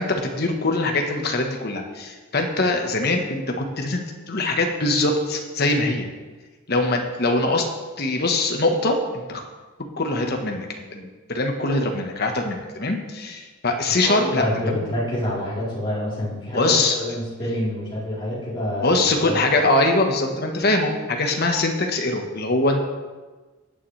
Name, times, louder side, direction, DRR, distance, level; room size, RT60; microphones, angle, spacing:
voice 1, 0.0-6.1 6.7-7.6 8.0-9.4 10.0-14.8 16.5-17.0 18.8-22.8, left 2 dB, 50° left, 3 dB, 1.4 m, -23 dB
voice 2, 13.9-19.5, left 1 dB, 25° left, -8 dB, 4.0 m, -27 dB
14.5 x 9.0 x 3.4 m, 1.3 s
head